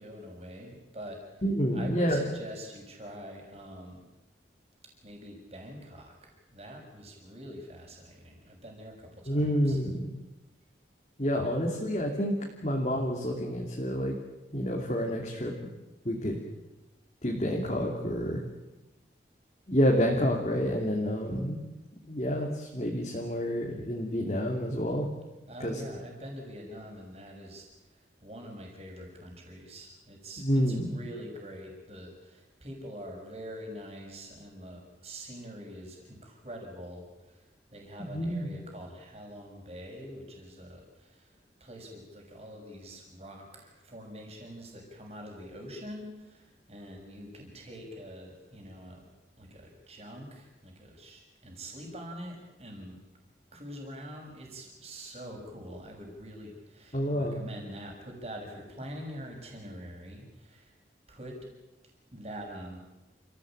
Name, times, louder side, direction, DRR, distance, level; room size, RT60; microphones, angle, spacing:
voice 1, 0.0-4.0 5.0-9.8 25.5-49.0 49.4-53.0 53.5-60.7 61.1-61.5 62.1-62.8, equal, 35° right, 1 dB, 6.4 m, -45 dB
voice 2, 1.4-2.3 9.3-10.1 11.2-12.3 12.6-14.2 14.5-15.5 16.0-16.4 17.2-18.4 19.7-21.6 22.1-25.1 25.6-25.8 30.4-31.0 38.1-38.5 56.9-57.4, equal, 35° left, -1 dB, 2.9 m, -28 dB
28.5 x 15.5 x 8.9 m, 1.1 s
head